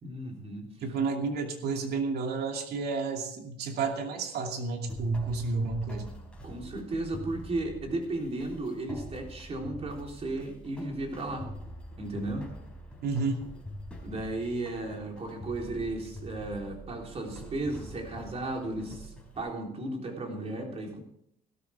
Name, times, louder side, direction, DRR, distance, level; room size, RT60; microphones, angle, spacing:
voice 1, 0.0-0.7 6.4-11.5 12.0-12.5 14.0-21.0, right 2 dB, 35° right, 1 dB, 3.7 m, -35 dB
voice 2, 0.8-6.1 13.0-13.4, right 4 dB, 70° right, 3 dB, 2.6 m, -31 dB
sound 1, 4.9-19.4, equal, 5° left, 4.4 m, -45 dB
16.5 x 13.0 x 3.6 m, 0.72 s
cardioid pair, 110°, 17 cm